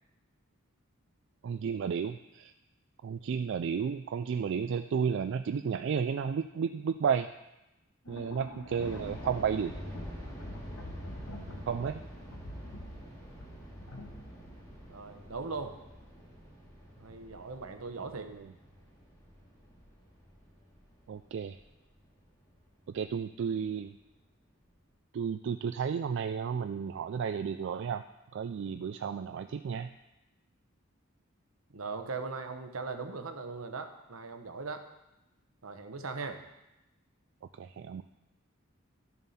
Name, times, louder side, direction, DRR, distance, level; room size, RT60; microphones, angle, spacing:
voice 1, 1.4-2.5 3.0-7.3 8.1-9.7 11.7-12.0 21.1-21.5 22.9-23.9 25.1-28.0 28.3-29.9 37.6-38.0, right 6 dB, 60° right, 8 dB, 0.3 m, -32 dB
sound 1, 8.1-15.0, left 1 dB, 90° left, 1.1 m, -46 dB
sound 2, 8.8-23.6 23.9-24.0 24.6-24.9, equal, 15° left, 2.5 m, -48 dB
voice 2, 14.9-15.8 17.0-18.3 31.7-34.8 35.6-36.4, right 4 dB, 80° right, 6 dB, 1.0 m, -39 dB
12.0 x 7.0 x 4.2 m, 0.96 s
head